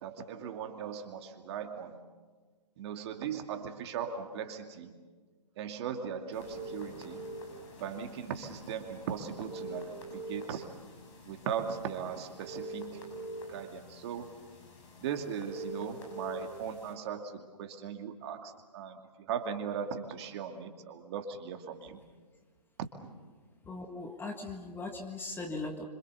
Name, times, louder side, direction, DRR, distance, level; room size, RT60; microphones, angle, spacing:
voice 1, 0.0-2.0 2.8-4.9 5.6-7.3 7.8-10.7 11.3-13.2 13.5-14.3 15.0-19.0 19.3-22.0, right 7 dB, 40° right, 5 dB, 2.5 m, -38 dB
sound 1, 6.3-16.9, right 1 dB, 45° left, 7.3 m, -45 dB
voice 2, 23.7-25.9, left 3 dB, 10° left, 4 dB, 1.7 m, -39 dB
27.5 x 26.0 x 6.9 m, 1.4 s
figure-of-eight pair, 135°, 21 cm